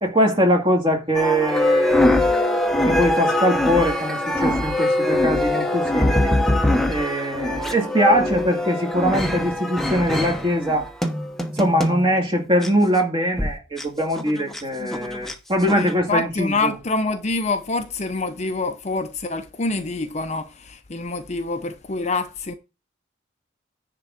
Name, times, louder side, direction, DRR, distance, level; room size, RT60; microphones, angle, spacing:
voice 1, 0.0-2.5 2.9-6.4 6.9-10.9 11.5-16.7, equal, 25° right, 2.1 m, -22 dB
sound 1, 1.1-12.1 12.6-12.7 13.4-13.5 13.8-13.9 14.2-14.6 14.9-15.3 15.7-15.9, left 1 dB, ahead, 0.9 m, -22 dB
voice 2, 15.7-22.5, left 3 dB, 35° left, 0.6 m, -26 dB
10.0 x 3.7 x 7.4 m
head